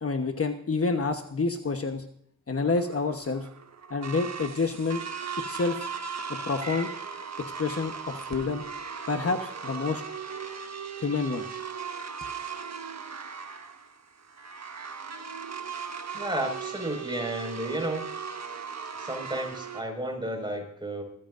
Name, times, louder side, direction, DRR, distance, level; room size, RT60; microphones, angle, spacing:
voice 1, 0.0-2.0 2.5-3.5 3.9-5.0 5.5-5.9 6.3-6.9 7.4-8.6 9.1-10.0 11.0-11.5, left 4 dB, 45° left, 5 dB, 1.1 m, -28 dB
sound 1, 2.6-19.8, right 6 dB, 60° right, 1.4 m, -38 dB
voice 2, 16.1-18.1 19.0-21.0, right 1 dB, 15° right, 3 dB, 5.3 m, -32 dB
24.5 x 15.0 x 2.6 m, 0.69 s
wide cardioid pair, 105°, 31 cm